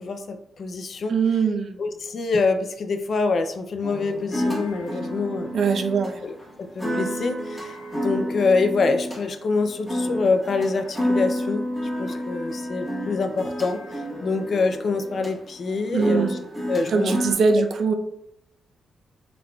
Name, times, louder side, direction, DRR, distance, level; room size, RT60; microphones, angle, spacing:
voice 1, 0.0-1.2 1.8-5.5 6.2-11.6 12.0-16.4 16.7-17.2, left 4 dB, 45° left, 7 dB, 0.3 m, -25 dB
voice 2, 1.1-1.8 5.5-6.2 15.9-16.3 16.9-17.9, right 5 dB, 55° right, 6 dB, 0.4 m, -21 dB
sound 1, 3.8-17.3, equal, 5° left, 0.9 m, -30 dB
4.5 x 3.9 x 2.2 m, 0.78 s
wide cardioid pair, 170°, 0 cm